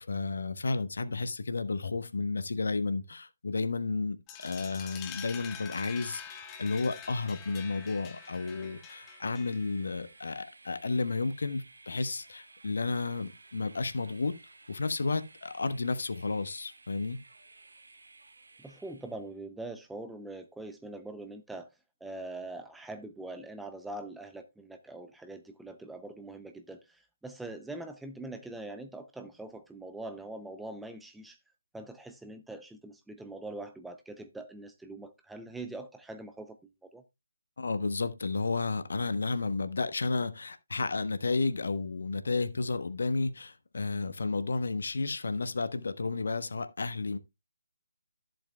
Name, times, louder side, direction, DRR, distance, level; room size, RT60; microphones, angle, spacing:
voice 1, 0.0-14.3 14.7-17.2 37.6-47.2, left 3 dB, 55° left, 0.9 m, -32 dB
sound 1, 4.3-9.8, left 8 dB, 15° left, 0.9 m, -46 dB
Train, 5.9-19.3, right 3 dB, 60° right, 1.5 m, -56 dB
voice 2, 18.6-21.7 22.0-31.4 31.7-36.6 36.9-37.0, right 2 dB, 5° right, 0.5 m, -43 dB
13.5 x 7.7 x 2.2 m
figure-of-eight pair, 150°, 0 cm